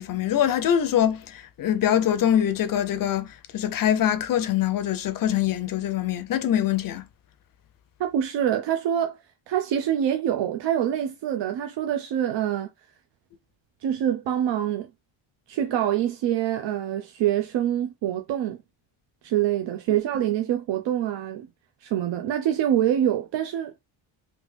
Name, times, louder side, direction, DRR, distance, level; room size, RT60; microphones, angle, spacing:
voice 1, 0.0-3.3 3.5-7.0, left 10 dB, 45° left, 0.5 m, -23 dB
voice 2, 8.0-9.2 9.5-12.7 13.8-14.9 15.5-18.6 19.2-21.5 21.8-23.7, right 10 dB, 65° right, 0.5 m, -25 dB
3.4 x 2.5 x 3.2 m
cardioid pair, 150°, 48 cm